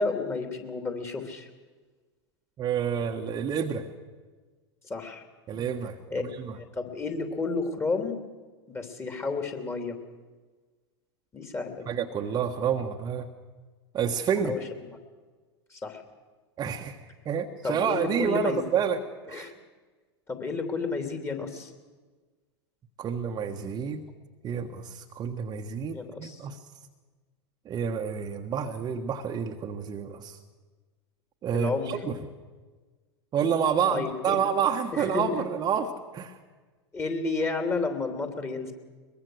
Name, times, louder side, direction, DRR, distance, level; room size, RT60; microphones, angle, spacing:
voice 1, 0.0-1.5 4.9-5.2 6.1-6.2 6.5-8.2 8.7-10.0 11.3-11.9 14.4-14.6 15.7-16.0 17.6-18.6 19.3-19.5 20.3-21.7 25.9-26.4 31.5-31.9 33.9-34.4 34.9-35.4 36.9-38.7, left 3 dB, 15° left, 5 dB, 3.0 m, -31 dB
voice 2, 2.6-3.9 5.5-6.6 11.9-13.3 13.9-14.5 16.6-17.0 17.2-19.0 19.3-19.5 23.0-24.0 24.4-26.6 27.6-30.4 31.4-32.2 33.3-36.4, right 7 dB, 30° right, 3 dB, 1.4 m, -29 dB
22.5 x 21.5 x 6.4 m, 1.3 s
figure-of-eight pair, 90°, 14 cm